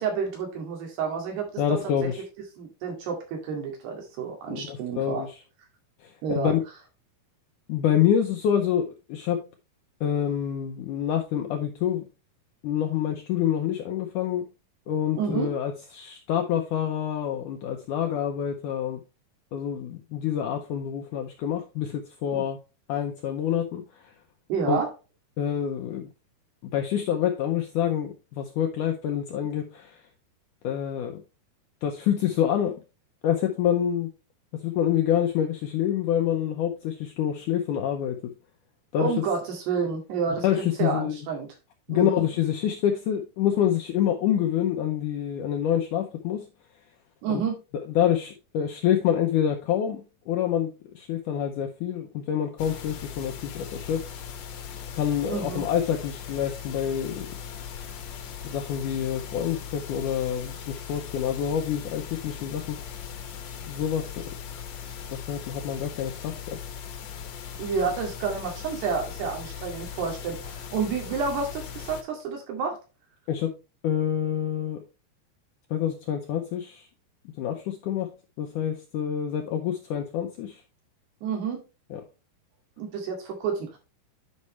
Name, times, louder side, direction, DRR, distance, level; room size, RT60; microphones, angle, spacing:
voice 1, 0.0-1.8 2.6-5.3 6.2-6.5 15.2-15.5 22.3-22.4 24.5-24.9 39.0-41.5 41.9-42.2 47.2-47.6 55.3-55.6 67.6-72.8 81.2-81.6 82.8-83.8, right 5 dB, 85° right, 4.2 m, -29 dB
voice 2, 1.6-2.2 4.5-5.3 6.0-6.6 7.7-9.5 10.0-12.1 12.6-14.5 14.9-19.0 19.5-22.6 22.9-24.1 24.7-24.8 25.4-26.1 26.7-30.0 30.6-31.2 31.8-32.8 33.2-34.1 34.5-38.3 38.9-39.1 40.4-41.2 41.9-46.5 47.3-47.4 47.9-54.0 54.9-57.3 58.4-62.8 63.7-64.3 65.1-66.6 73.3-73.6 73.8-74.8 75.7-76.9 77.4-80.6 81.9-82.0, left 9 dB, 80° left, 1.8 m, -27 dB
sound 1, 52.6-72.0, left 7 dB, 65° left, 1.8 m, -39 dB
9.6 x 5.5 x 3.1 m
omnidirectional pair, 4.6 m